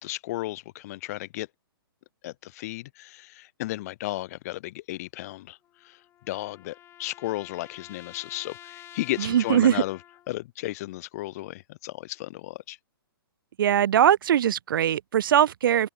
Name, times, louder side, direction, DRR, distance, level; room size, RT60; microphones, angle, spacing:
voice 1, 0.0-1.5 2.2-6.0 6.3-10.0 10.3-12.8, left 17 dB, 40° left, 1.9 m, -34 dB
sound 1, 5.6-10.4, left 12 dB, 20° left, 4.6 m, -49 dB
voice 2, 9.2-9.8 13.6-15.9, right 10 dB, 60° right, 0.8 m, -21 dB
open air
hypercardioid pair, 145°, 13 cm